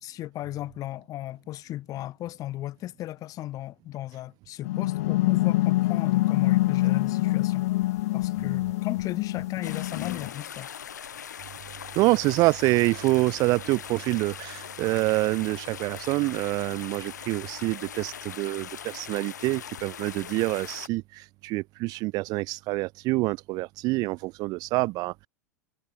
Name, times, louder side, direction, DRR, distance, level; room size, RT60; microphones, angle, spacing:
voice 1, 0.0-7.7 8.1-10.7, left 14 dB, 40° left, 2.0 m, -36 dB
sound 1, 4.6-10.3, left 18 dB, 60° left, 0.6 m, -25 dB
sound 2, 9.6-20.9, left 8 dB, 75° left, 2.2 m, -41 dB
voice 2, 12.0-25.3, right 22 dB, 40° right, 0.6 m, -26 dB
figure-of-eight pair, 90°, 10 cm